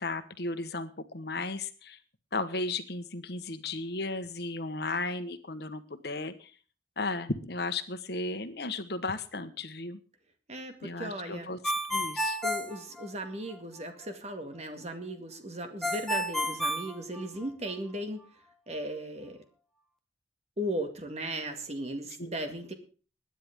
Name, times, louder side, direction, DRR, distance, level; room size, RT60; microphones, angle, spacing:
voice 1, 0.0-2.0 2.3-6.5 7.0-10.0 10.8-11.6 11.9-12.4 22.2-22.3, left 3 dB, 60° left, 10 dB, 1.3 m, -35 dB
voice 2, 10.5-11.5 12.4-18.2 18.7-19.4 20.6-22.7, right 1 dB, 35° right, 6 dB, 2.1 m, -37 dB
Ringtone, 11.6-13.6 15.8-17.7, equal, ahead, 1.3 m, -31 dB
21.0 x 9.9 x 3.7 m, 0.37 s
head